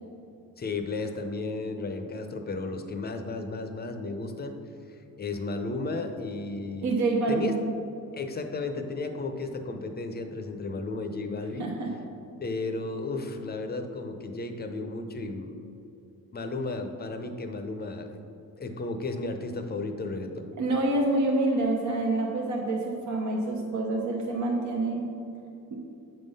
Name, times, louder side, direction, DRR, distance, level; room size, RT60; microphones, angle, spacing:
voice 1, 0.6-4.5 5.2-6.9 7.3-7.5 8.1-11.7 12.4-15.6 16.3-18.1 18.6-20.4, left 3 dB, 30° left, 6 dB, 0.6 m, -33 dB
voice 2, 6.8-7.6 11.6-11.9 20.6-25.1 25.7-25.8, right 2 dB, 55° right, 0 dB, 0.8 m, -27 dB
7.7 x 3.8 x 5.4 m, 2.7 s
cardioid pair, 95°, 35 cm